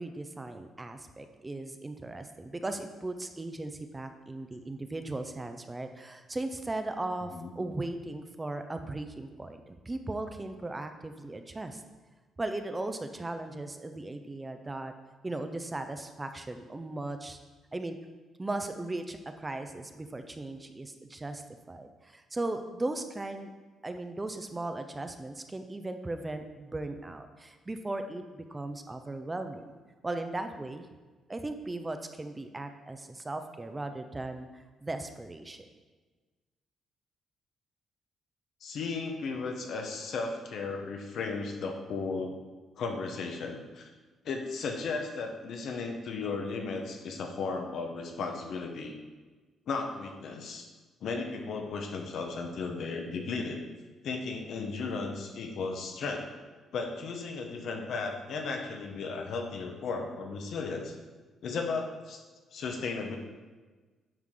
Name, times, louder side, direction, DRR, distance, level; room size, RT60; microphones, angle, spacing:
voice 1, 0.0-11.8 12.4-14.9 15.2-17.4 17.7-18.0 18.4-21.4 21.7-23.5 23.8-29.7 30.0-30.9 31.3-35.6, right 2 dB, 20° right, 7 dB, 0.6 m, -37 dB
voice 2, 38.6-42.4 42.8-43.9 44.2-48.9 49.7-50.7 51.0-53.6 54.0-56.3 56.7-61.0 61.4-62.2 62.5-63.2, left 4 dB, 70° left, 3 dB, 1.1 m, -35 dB
9.4 x 4.8 x 3.8 m, 1.3 s
cardioid pair, 90°, 0 cm